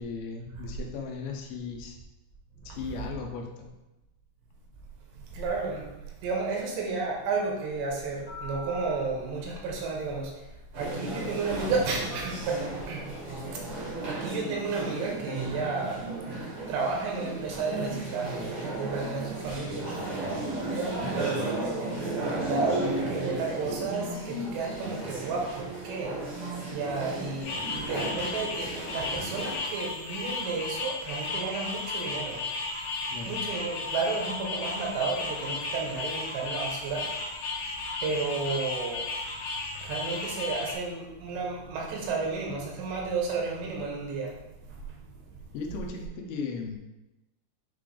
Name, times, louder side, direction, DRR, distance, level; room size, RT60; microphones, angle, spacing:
voice 1, 0.0-2.0 2.7-3.7 33.1-33.4 45.5-46.8, left 4 dB, 80° left, 1 dB, 3.0 m, -37 dB
voice 2, 5.3-5.9 6.2-10.5 10.8-13.0 13.5-16.0 16.7-19.9 20.6-26.2 26.7-32.4 33.3-37.1 38.0-39.0 39.8-44.4 44.7-45.1, right 4 dB, 80° right, -1 dB, 3.0 m, -32 dB
Telephone, 7.7-14.1, left 1 dB, 30° left, 1.0 m, -46 dB
sound 1, 10.7-29.6, right 2 dB, 55° right, 1.5 m, -34 dB
sound 2, 27.4-40.7, left 3 dB, 60° left, 3.0 m, -34 dB
8.5 x 3.7 x 3.4 m, 0.99 s
omnidirectional pair, 5.2 m